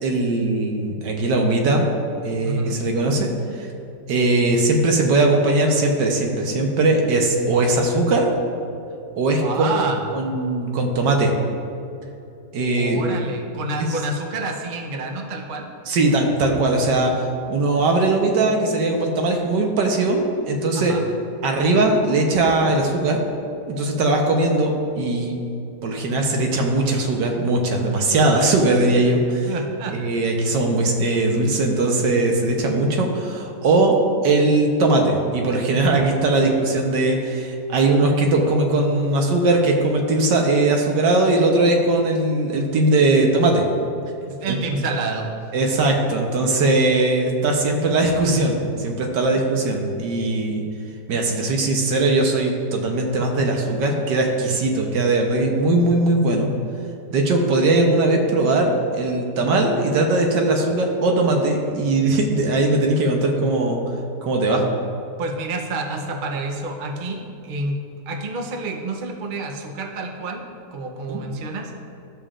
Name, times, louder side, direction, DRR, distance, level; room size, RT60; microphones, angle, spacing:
voice 1, 0.0-1.9 2.2-3.3 3.6-3.7 4.1-8.3 9.1-9.6 10.1-11.3 12.5-13.0 13.8-13.9 15.9-21.0 21.4-23.2 23.7-25.4 25.8-29.5 29.9-34.0 34.2-43.6 44.5-44.6 45.5-50.6 51.1-56.5 57.1-63.8 64.2-64.6 71.1-71.2, right 2 dB, 80° right, 2 dB, 1.6 m, -20 dB
voice 2, 2.4-2.8 9.4-10.0 12.8-15.7 20.7-21.0 29.5-30.0 44.3-45.3 65.2-70.4 70.7-71.8, right 3 dB, 50° right, 2 dB, 0.6 m, -28 dB
13.0 x 6.9 x 2.5 m, 2.6 s
omnidirectional pair, 1.9 m